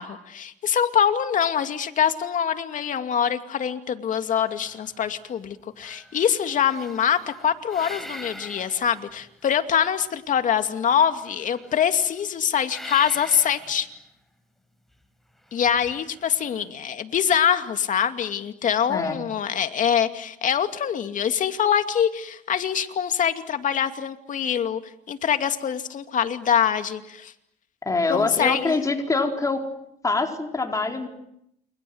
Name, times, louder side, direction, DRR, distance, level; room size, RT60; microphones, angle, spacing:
voice 1, 0.0-13.9 15.5-27.3 28.1-28.7, left 8 dB, 50° left, 8 dB, 2.5 m, -24 dB
sound 1, 4.3-5.5 5.8-9.5 11.1-12.2 12.7-14.0 15.5-16.6, equal, ahead, 4.7 m, -43 dB
voice 2, 27.9-29.6 30.0-31.1, left 3 dB, 20° left, 3 dB, 4.6 m, -24 dB
29.0 x 24.5 x 8.0 m, 0.76 s
cardioid pair, 110°, 17 cm